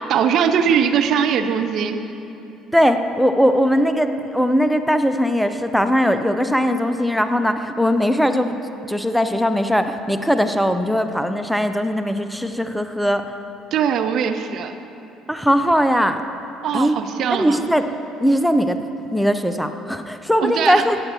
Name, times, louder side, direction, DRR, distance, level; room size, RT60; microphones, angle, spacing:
voice 1, 0.1-2.0 13.7-14.7 16.6-17.6 20.4-20.8, right 7 dB, 50° right, 8 dB, 0.5 m, -20 dB
voice 2, 2.7-8.6 8.9-13.2 15.3-16.2 16.7-17.0 17.3-17.9 18.2-18.8 19.1-21.0, equal, ahead, 8 dB, 0.6 m, -19 dB
15.5 x 8.6 x 4.3 m, 2.9 s
figure-of-eight pair, 55°, 0 cm